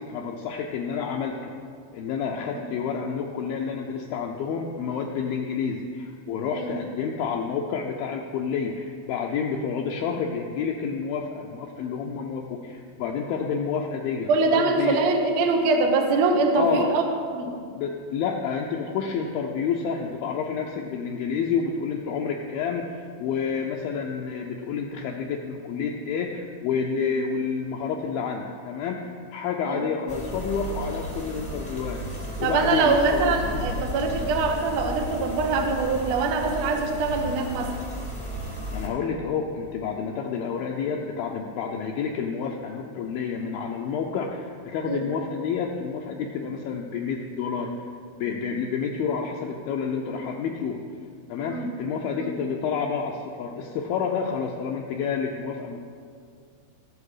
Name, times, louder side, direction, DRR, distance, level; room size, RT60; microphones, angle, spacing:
voice 1, 0.0-1.5 1.9-15.0 16.6-16.9 17.8-33.4 38.7-47.9 48.2-50.8 51.3-55.8, left 6 dB, 80° left, 1 dB, 2.2 m, -29 dB
voice 2, 14.3-17.0 17.3-17.5 27.0-27.1 29.6-29.9 32.4-37.7 44.8-45.0 51.5-51.7 52.2-52.3, right 3 dB, 85° right, 3 dB, 1.5 m, -23 dB
sound 1, 30.1-38.9, equal, 10° left, 0.3 m, -34 dB
17.5 x 6.7 x 4.9 m, 2.2 s
omnidirectional pair, 4.7 m